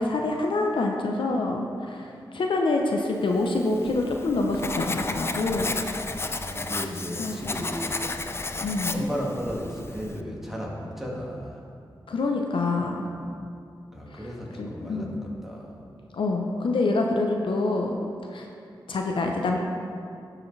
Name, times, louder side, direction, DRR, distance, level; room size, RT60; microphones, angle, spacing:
voice 1, 0.0-5.8 7.2-7.6 8.6-9.1 12.1-13.1 14.1-14.2 14.6-15.3 16.1-18.0 18.3-18.5 18.9-19.6, left 2 dB, 75° left, 1 dB, 0.6 m, -26 dB
Writing, 3.5-10.2, left 3 dB, 30° left, 0.4 m, -33 dB
voice 2, 6.1-8.0 8.5-11.7 13.0-13.4 13.9-15.8, equal, 5° right, -3 dB, 1.8 m, -35 dB
11.5 x 4.9 x 3.2 m, 2.4 s
cardioid pair, 50°, 9 cm